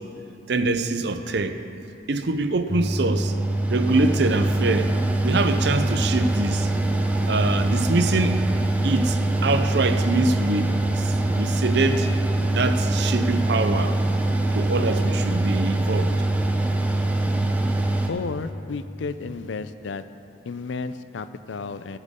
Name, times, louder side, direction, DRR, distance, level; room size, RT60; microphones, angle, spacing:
voice 1, 0.5-1.6 2.1-3.4 3.7-4.9 5.2-6.7 7.3-8.4 8.8-12.1 12.5-14.0 14.5-16.2, right 3 dB, 60° right, 0.6 m, -24 dB
Mechanical fan, 2.7-18.1, right 2 dB, 10° right, 0.6 m, -23 dB
voice 2, 18.1-20.0 20.5-22.0, left 4 dB, 80° left, 0.5 m, -32 dB
18.5 x 8.0 x 3.7 m
head